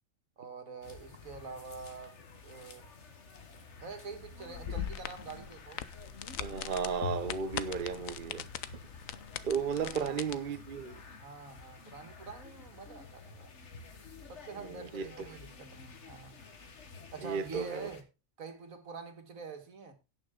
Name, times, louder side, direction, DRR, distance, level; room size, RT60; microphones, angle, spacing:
voice 1, 0.4-2.9 3.8-5.8 9.8-9.9 11.2-13.6 14.3-16.4 17.1-18.0 18.4-19.9, right 4 dB, 80° right, 2.2 m, -46 dB
sound 1, 0.8-18.0, left 4 dB, 60° left, 1.7 m, -49 dB
sound 2, 4.5-10.3, left 10 dB, 75° left, 1.1 m, -41 dB
voice 2, 6.4-8.4 9.4-11.0 14.6-15.3 17.2-17.9, right 6 dB, 45° right, 0.9 m, -34 dB
17.0 x 6.3 x 3.7 m
omnidirectional pair, 1.4 m